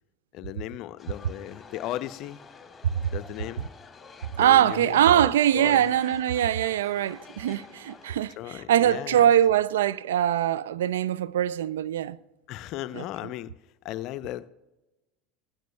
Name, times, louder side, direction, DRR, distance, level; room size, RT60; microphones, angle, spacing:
voice 1, 0.3-2.4 3.1-3.7 4.4-5.9 8.4-9.3 12.5-13.5 13.8-14.5, left 14 dB, 55° left, 0.5 m, -36 dB
sound 1, 1.0-8.3, left 5 dB, 25° left, 2.3 m, -49 dB
voice 2, 4.4-12.2 12.9-13.0, right 11 dB, 75° right, 0.4 m, -22 dB
17.0 x 15.0 x 2.2 m
hypercardioid pair, 80°, 0 cm